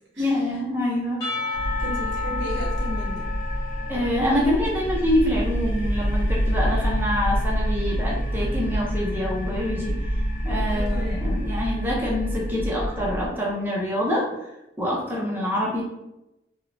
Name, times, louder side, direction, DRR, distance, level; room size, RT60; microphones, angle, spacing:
voice 1, 0.2-1.2 1.7-1.8 3.9-9.9 10.4-14.2 14.8-15.8, left 1 dB, 10° right, -5 dB, 0.5 m, -25 dB
Percussion / Church bell, 1.2-4.9, left 4 dB, 20° left, 0.8 m, -32 dB
sound 1, 1.5-13.3, equal, 45° left, 0.4 m, -27 dB
voice 2, 1.8-3.3 10.7-11.3, equal, 85° right, -4 dB, 1.0 m, -35 dB
2.9 x 2.0 x 2.5 m, 0.90 s
head